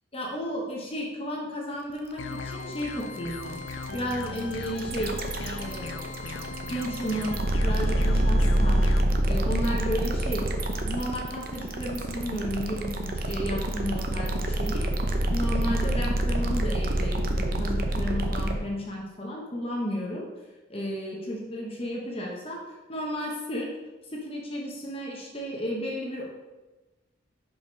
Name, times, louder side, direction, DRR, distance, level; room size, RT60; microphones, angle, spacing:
voice 1, 0.1-3.6 3.9-5.1 5.4-6.1 6.7-8.8 9.3-10.5 10.8-20.3 20.7-22.6 22.9-23.7 24.1-26.2, equal, 30° left, -2 dB, 1.0 m, -33 dB
sound 1, 1.9-18.6, right 1 dB, 50° right, 0.7 m, -27 dB
sound 2, 2.2-9.0, left 4 dB, 80° left, 0.5 m, -38 dB
5.3 x 5.0 x 5.2 m, 1.2 s
head